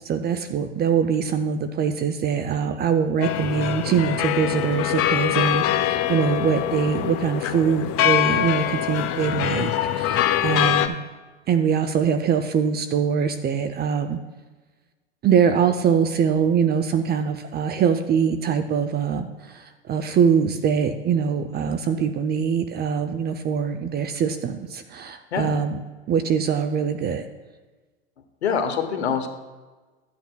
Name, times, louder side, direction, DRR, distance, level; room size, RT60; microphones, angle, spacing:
voice 1, 0.0-10.9 11.5-14.2 15.2-25.8 26.1-27.2, right 7 dB, 30° right, 9 dB, 0.6 m, -23 dB
sound 1, 3.2-10.9, left 12 dB, 45° left, 0.7 m, -23 dB
voice 2, 28.4-29.3, left 7 dB, 90° left, 7 dB, 1.1 m, -24 dB
13.5 x 8.4 x 2.3 m, 1.3 s
hypercardioid pair, 95°, 32 cm